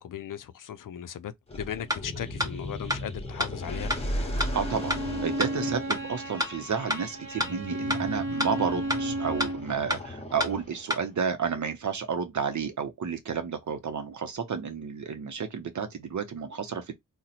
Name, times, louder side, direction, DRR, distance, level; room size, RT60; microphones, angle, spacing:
voice 1, 0.0-4.2, left 9 dB, 75° left, 0.5 m, -38 dB
sound 1, 1.5-11.0, left 1 dB, 20° left, 0.9 m, -37 dB
sound 2, 1.9-2.0 2.4-2.5 2.9-3.0 3.4-3.5 3.9-4.0 4.4-4.5 4.9-5.0 5.4-5.5 5.9-6.0 6.4-6.5 6.9-7.0 7.4-7.5 7.9-8.0 8.4-8.5 8.9-9.0 9.4-9.5 9.9-10.0 10.4-10.5 10.9-11.0, left 1 dB, 10° right, 0.8 m, -27 dB
Bowed string instrument, 4.3-9.7, right 1 dB, 40° right, 1.0 m, -33 dB
voice 2, 4.5-16.9, right 6 dB, 65° right, 0.6 m, -31 dB
2.8 x 2.1 x 4.0 m
wide cardioid pair, 105°, 33 cm